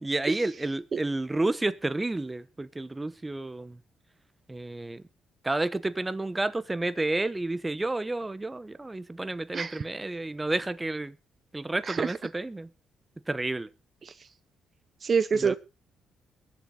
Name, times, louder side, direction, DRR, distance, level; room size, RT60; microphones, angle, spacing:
voice 1, 0.0-3.8 4.5-5.0 5.4-11.1 11.5-12.7 13.3-13.7 15.3-15.6, right 2 dB, 15° right, 1.0 m, -30 dB
voice 2, 9.5-9.8 11.9-12.1 14.0-14.1 15.0-15.6, right 6 dB, 45° right, 0.8 m, -26 dB
22.0 x 7.5 x 3.9 m
cardioid pair, 90°, 0 cm